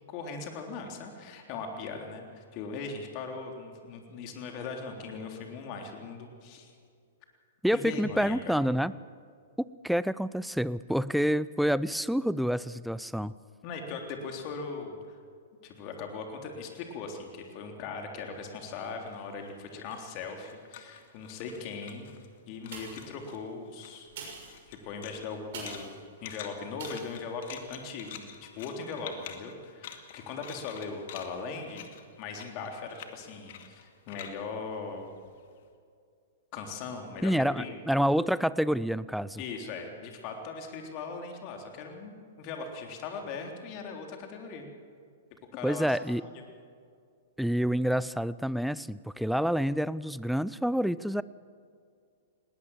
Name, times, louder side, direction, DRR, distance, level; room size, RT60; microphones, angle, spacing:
voice 1, 0.1-6.7 7.7-8.6 13.6-15.2 15.6-22.1 22.5-24.1 24.7-25.9 26.2-31.8 32.2-35.1 36.5-37.8 39.4-44.7 45.5-46.0 46.2-46.5, left 4 dB, 40° left, 3 dB, 3.5 m, -39 dB
voice 2, 7.6-8.9 9.6-13.3 37.2-39.4 45.6-46.2 47.4-51.2, equal, ahead, 18 dB, 0.5 m, -28 dB
sound 1, 18.4-22.4 22.6-23.4 23.7-35.6, left 9 dB, 55° left, 2.1 m, -48 dB
sound 2, 22.6-23.2 24.0-26.0 26.8-27.2 27.7-27.8, right 5 dB, 60° right, 6.4 m, -44 dB
20.0 x 18.5 x 7.3 m, 2.2 s
hypercardioid pair, 115°, 0 cm